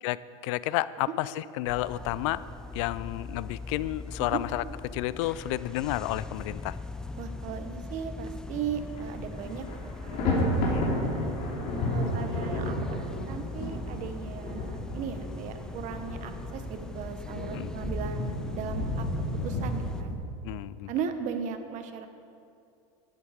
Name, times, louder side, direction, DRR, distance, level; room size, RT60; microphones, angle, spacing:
voice 1, 0.0-2.5 2.7-4.6 4.9-6.7 10.7-10.9 17.5-17.7 20.4-20.9, left 16 dB, 65° left, 18 dB, 0.4 m, -31 dB
sound 1, 1.7-20.0, left 2 dB, 5° left, 0.4 m, -40 dB
voice 2, 7.2-9.7 10.0-11.2 11.9-19.1 19.4-20.2 20.9-22.1, right 7 dB, 45° right, 8 dB, 1.2 m, -37 dB
Thunder, 8.7-9.0 9.3-20.1, left 1 dB, 50° left, 3.1 m, -32 dB
12.0 x 10.5 x 5.0 m, 2.5 s
supercardioid pair, 120°, 17 cm